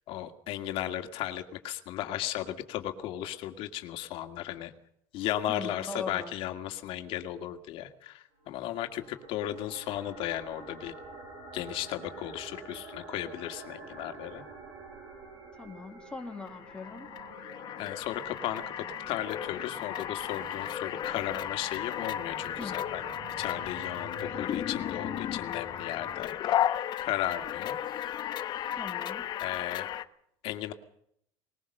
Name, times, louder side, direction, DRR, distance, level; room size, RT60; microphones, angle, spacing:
voice 1, 0.1-4.7 5.1-10.9 11.5-14.4 17.8-23.0 23.4-26.3 26.6-26.7 27.0-27.8 29.4-29.9 30.4-30.7, left 12 dB, 60° left, 6 dB, 2.3 m, -35 dB
voice 2, 5.5-6.4 15.6-17.1 22.6-22.8 28.7-29.3, left 3 dB, 10° left, 2 dB, 2.0 m, -40 dB
sound 1, 8.4-26.2, right 3 dB, 50° right, 7.5 m, -48 dB
sound 2, 16.4-30.0, left 11 dB, 45° left, 1.1 m, -34 dB
21.0 x 21.0 x 6.8 m, 0.71 s
cardioid pair, 155°, 11 cm